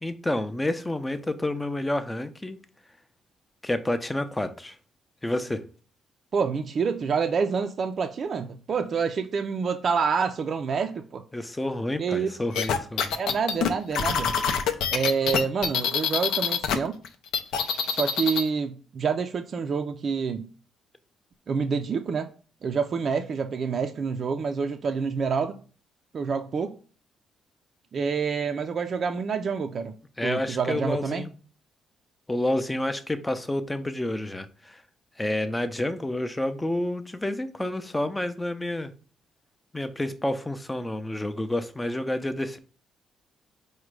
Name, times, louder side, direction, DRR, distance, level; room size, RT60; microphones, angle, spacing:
voice 1, 0.0-2.6 3.6-4.8 5.2-5.6 11.3-13.2 30.2-31.3 32.3-34.8 35.2-38.9 39.7-42.6, left 1 dB, 10° left, 0.5 m, -29 dB
voice 2, 6.3-11.2 12.0-12.3 13.2-14.4 14.9-16.9 17.9-20.5 21.5-22.3 22.6-25.6 26.1-26.7 27.9-29.9 30.2-31.2, right 5 dB, 50° right, 0.4 m, -27 dB
sound 1, 12.5-16.8 17.0-18.5, left 7 dB, 85° left, 0.5 m, -25 dB
4.8 x 2.2 x 4.7 m
cardioid pair, 90°, 0 cm